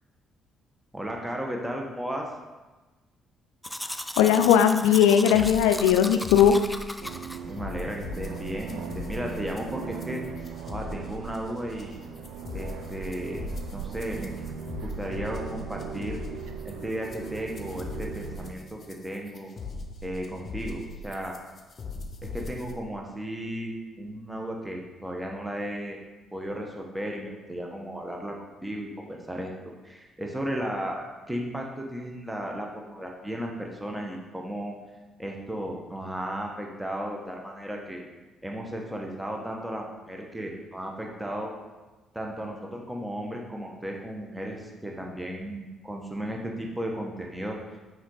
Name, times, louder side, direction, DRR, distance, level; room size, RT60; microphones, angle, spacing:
voice 1, 0.9-2.3 7.4-10.2 10.7-12.0 12.5-13.4 13.7-14.3 14.8-16.2 16.6-19.5 20.0-21.3 22.3-26.0 26.3-28.3 28.6-29.5 29.8-34.7 35.2-38.0 38.4-41.5 42.1-47.6, equal, 10° right, 0 dB, 1.2 m, -34 dB
Domestic sounds home sounds, 3.6-7.4, equal, 5° left, 0.4 m, -36 dB
voice 2, 4.2-6.6, left 9 dB, 80° left, 8 dB, 0.4 m, -19 dB
sound 1, 4.8-22.7, left 3 dB, 45° left, 0.8 m, -40 dB
sound 2, 7.0-18.5, right 6 dB, 70° right, 0.5 m, -39 dB
6.2 x 5.2 x 3.9 m, 1.2 s
hypercardioid pair, 45°, 0 cm